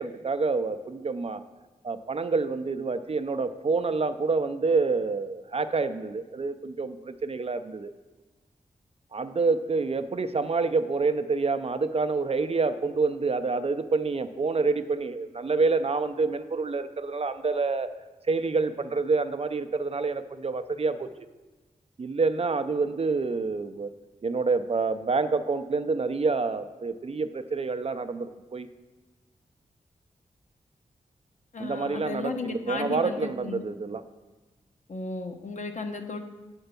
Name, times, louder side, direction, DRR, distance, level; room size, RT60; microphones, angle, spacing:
voice 1, 0.0-1.4 1.8-7.9 9.1-17.9 18.3-21.1 22.0-23.9 24.2-28.7 31.6-34.0, right 4 dB, 45° right, 10 dB, 0.5 m, -27 dB
voice 2, 31.5-33.6 34.9-36.2, left 3 dB, 55° left, 5 dB, 0.9 m, -34 dB
7.8 x 4.5 x 6.7 m, 1.2 s
cardioid pair, 60°, 15 cm